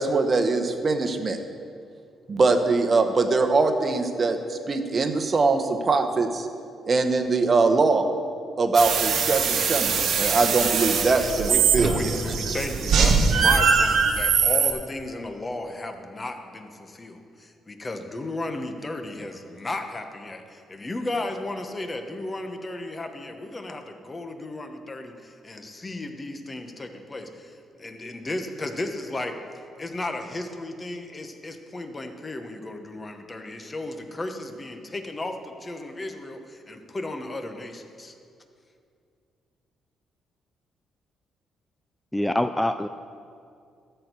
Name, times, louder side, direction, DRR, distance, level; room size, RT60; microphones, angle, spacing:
voice 1, 0.0-1.4 2.3-6.5 6.8-8.1 8.6-12.1, right 3 dB, 40° right, 7 dB, 1.0 m, -22 dB
sound 1, 8.7-14.7, right 5 dB, 70° right, 1.1 m, -22 dB
voice 2, 11.5-29.4 29.8-38.1, left 2 dB, 25° left, 5 dB, 1.1 m, -34 dB
voice 3, 42.1-42.9, left 1 dB, 5° left, 9 dB, 0.3 m, -24 dB
13.0 x 4.5 x 8.2 m, 2.4 s
cardioid pair, 90°, 0 cm